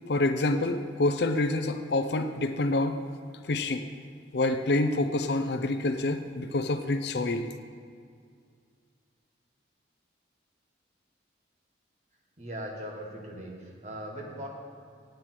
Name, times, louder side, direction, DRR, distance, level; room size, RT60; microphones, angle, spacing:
voice 1, 0.1-3.0 3.4-3.9 4.3-7.5, left 2 dB, 60° left, 9 dB, 0.6 m, -27 dB
voice 2, 12.4-14.5, equal, 40° right, -1 dB, 1.6 m, -39 dB
9.1 x 8.4 x 6.0 m, 2.2 s
head